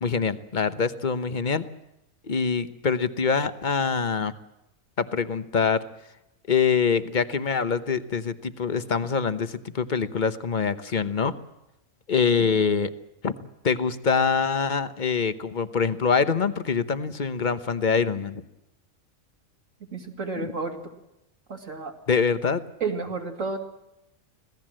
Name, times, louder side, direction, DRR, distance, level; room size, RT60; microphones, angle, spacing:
voice 1, 0.0-1.6 2.3-4.3 5.0-5.8 6.5-11.3 12.1-12.9 13.2-13.3 13.6-18.4 20.4-20.5 22.1-22.6, left 5 dB, 40° left, 12 dB, 1.1 m, -24 dB
voice 2, 19.9-20.9 21.5-21.9 22.8-23.6, right 4 dB, 70° right, 3 dB, 2.9 m, -31 dB
25.5 x 17.5 x 7.6 m, 0.89 s
omnidirectional pair, 1.4 m